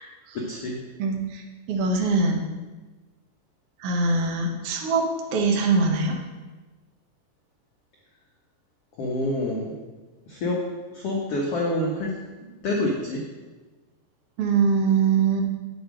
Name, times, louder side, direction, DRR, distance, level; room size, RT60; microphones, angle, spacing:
voice 1, 0.3-0.8 9.0-9.8 10.3-10.6 10.9-12.1 12.4-13.2, left 1 dB, 75° left, -2 dB, 1.3 m, -27 dB
voice 2, 1.0-1.4 1.7-2.5 3.8-5.0 5.3-6.2 14.4-15.4, right 4 dB, 70° right, 1 dB, 1.4 m, -22 dB
8.9 x 7.9 x 5.0 m, 1.2 s
omnidirectional pair, 4.5 m